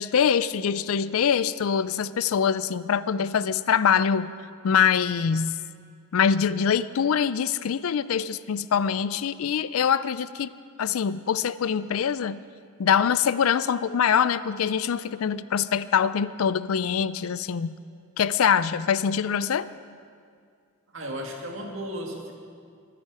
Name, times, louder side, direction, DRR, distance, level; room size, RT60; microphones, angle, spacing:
voice 1, 0.0-4.3 4.6-5.5 6.1-10.5 10.8-12.4 12.8-17.7 18.2-19.7, left 7 dB, 75° left, 16 dB, 0.4 m, -24 dB
voice 2, 20.9-22.3, equal, 60° right, 1 dB, 2.1 m, -34 dB
24.0 x 10.0 x 4.8 m, 2.2 s
head